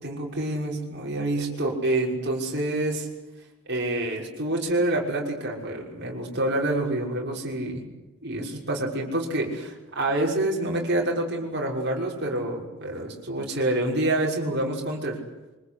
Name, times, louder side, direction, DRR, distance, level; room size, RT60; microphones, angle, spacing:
voice 1, 0.0-3.1 3.7-7.9 8.2-15.2, right 1 dB, 50° right, 0 dB, 6.1 m, -27 dB
26.0 x 24.0 x 8.4 m, 1.1 s
head